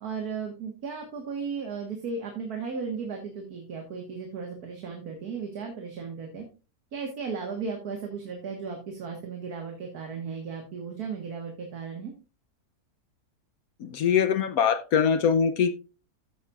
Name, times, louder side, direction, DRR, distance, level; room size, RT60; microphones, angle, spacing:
voice 1, 0.0-6.4 6.9-12.1, right 5 dB, 85° right, 2.0 m, -35 dB
voice 2, 13.8-15.8, left 7 dB, 75° left, 1.2 m, -23 dB
15.0 x 6.9 x 2.4 m
omnidirectional pair, 1.6 m